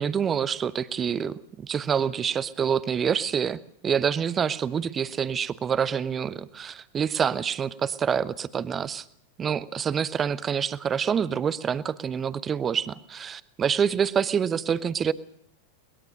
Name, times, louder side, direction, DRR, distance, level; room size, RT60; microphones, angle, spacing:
voice 1, 0.0-9.0 9.4-15.1, right 7 dB, 20° right, 18 dB, 0.9 m, -27 dB
22.5 x 20.5 x 6.7 m, 0.71 s
figure-of-eight pair, 90°, 0 cm